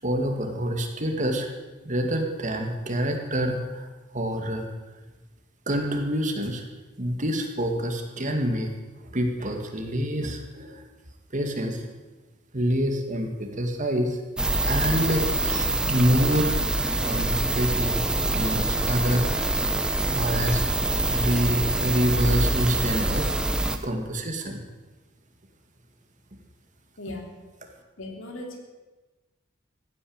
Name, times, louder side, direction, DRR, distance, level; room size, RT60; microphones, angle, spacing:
voice 1, 0.0-1.5 1.8-3.9 4.1-4.7 5.7-6.6 7.0-8.7 9.1-10.8 11.3-11.8 12.5-14.2 14.6-16.7 17.0-17.9 18.2-19.7 20.1-23.4 23.8-24.6, equal, 40° right, 4 dB, 2.1 m, -27 dB
sound 1, 14.4-23.8, right 2 dB, 5° right, 1.0 m, -25 dB
voice 2, 27.0-27.4 28.0-28.6, left 2 dB, 75° left, 2 dB, 3.1 m, -37 dB
15.5 x 9.7 x 8.8 m, 1.2 s
head